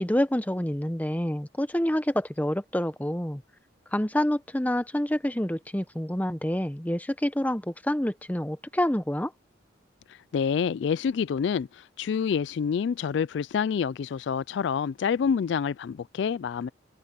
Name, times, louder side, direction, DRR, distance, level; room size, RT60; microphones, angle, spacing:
voice 1, 0.0-3.4 3.9-9.3, left 1 dB, 10° left, 0.8 m, -27 dB
voice 2, 10.1-16.7, left 6 dB, 65° left, 0.3 m, -27 dB
head